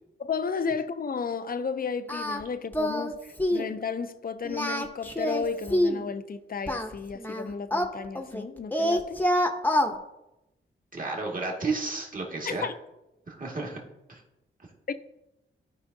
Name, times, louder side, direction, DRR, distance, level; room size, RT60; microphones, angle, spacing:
voice 1, 0.2-9.2 12.5-12.7 14.9-15.0, left 5 dB, 45° left, 0.6 m, -33 dB
Singing, 2.1-2.4 2.7-3.1 3.4-3.7 4.4-6.0 6.7-8.4 8.7-9.9, left 1 dB, 10° left, 0.9 m, -26 dB
voice 2, 10.9-12.7 13.3-13.8 14.1-14.2, right 3 dB, 40° right, 2.0 m, -32 dB
13.0 x 4.9 x 2.7 m
cardioid pair, 60°, 21 cm